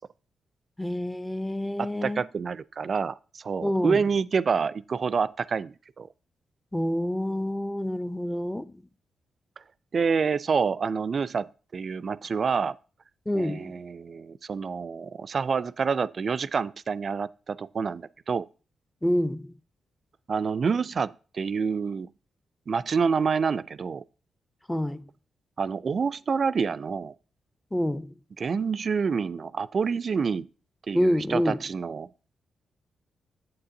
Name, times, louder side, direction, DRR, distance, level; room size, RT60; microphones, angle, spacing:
voice 1, 0.8-2.3 3.6-4.0 6.7-8.8 13.3-13.7 19.0-19.5 24.7-25.1 27.7-28.2 30.9-31.6, left 1 dB, 10° left, 0.5 m, -27 dB
voice 2, 1.8-6.1 9.9-11.5 11.7-12.8 13.3-18.5 20.3-22.1 22.7-24.0 25.6-27.1 28.4-30.5 30.9-32.1, right 5 dB, 55° right, 0.3 m, -27 dB
8.8 x 7.4 x 2.6 m
hypercardioid pair, 40°, 0 cm